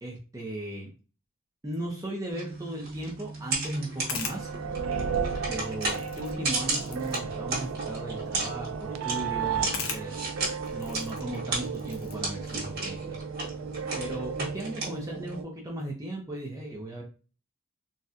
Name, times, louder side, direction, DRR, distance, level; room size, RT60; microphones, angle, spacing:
voice 1, 0.0-0.9 1.6-4.5 5.5-10.2 10.7-13.2 14.0-17.0, right 1 dB, 15° right, -2 dB, 0.5 m, -37 dB
sound 1, 2.3-15.4, right 3 dB, 45° right, 1.4 m, -35 dB
sound 2, 3.6-14.5, left 5 dB, 80° left, 0.7 m, -44 dB
sound 3, 4.1-15.4, right 7 dB, 85° right, 0.4 m, -35 dB
4.0 x 2.2 x 2.5 m, 0.35 s
head